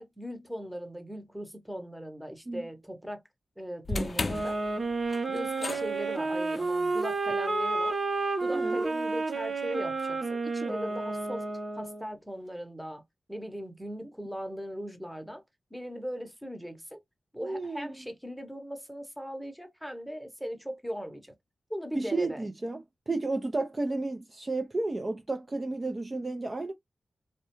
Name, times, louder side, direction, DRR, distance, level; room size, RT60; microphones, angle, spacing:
voice 1, 0.0-3.2 3.6-4.6 5.3-8.0 8.4-11.5 11.8-13.0 13.3-15.4 15.7-17.0 17.3-21.3 21.7-22.5, equal, ahead, 0.8 m, -39 dB
sound 1, 3.8-10.1, left 3 dB, 45° left, 0.4 m, -39 dB
voice 2, 3.9-4.4 8.5-8.8 17.4-18.0 21.9-26.7, right 2 dB, 35° right, 0.4 m, -32 dB
sound 2, 4.2-12.1, right 3 dB, 50° right, 0.8 m, -31 dB
2.3 x 2.1 x 2.9 m
cardioid pair, 60°, 0 cm